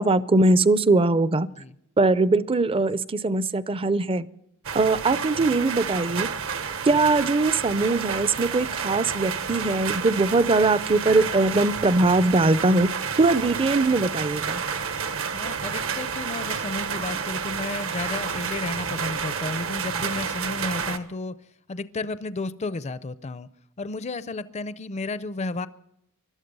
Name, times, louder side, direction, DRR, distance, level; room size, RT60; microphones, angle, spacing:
voice 1, 0.0-1.5 2.0-4.3 4.7-6.3 6.8-12.9 13.2-14.6, right 3 dB, 25° right, 17 dB, 0.5 m, -21 dB
sound 1, 4.6-21.0, right 6 dB, 65° right, 1.1 m, -30 dB
voice 2, 15.3-21.3 21.7-23.5 23.8-25.7, left 3 dB, 30° left, 15 dB, 0.5 m, -32 dB
21.0 x 12.5 x 5.4 m, 0.77 s
head